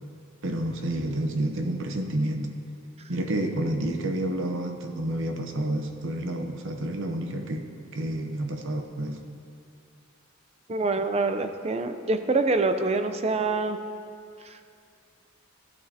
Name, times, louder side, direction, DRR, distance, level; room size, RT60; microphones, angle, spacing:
voice 1, 0.4-2.5 3.1-9.2, right 1 dB, 60° right, 5 dB, 0.8 m, -29 dB
voice 2, 10.7-13.8 14.4-14.6, right 3 dB, 30° right, 8 dB, 0.5 m, -25 dB
14.5 x 12.0 x 2.8 m, 2.4 s
head